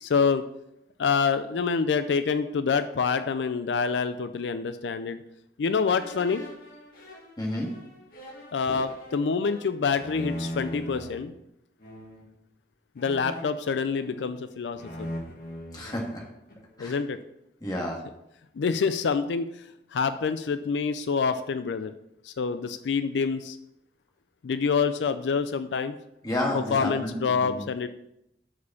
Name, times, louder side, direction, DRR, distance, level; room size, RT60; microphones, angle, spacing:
voice 1, 0.0-0.4 1.0-5.2 5.6-6.4 8.5-11.3 13.0-15.1 16.8-17.2 18.6-19.5 19.9-21.9 22.2-23.6 24.4-26.0 26.5-27.9, left 5 dB, 80° left, 11 dB, 0.4 m, -26 dB
sound 1, 5.9-11.2 11.8-12.3 13.0-14.4 14.7-16.7, equal, 50° left, 1.8 m, -40 dB
voice 2, 7.4-7.7 8.7-8.8 15.7-16.3 16.8-17.0 17.6-18.0 26.2-27.7, left 1 dB, 20° left, -1 dB, 1.6 m, -31 dB
6.2 x 5.1 x 6.9 m, 0.81 s
head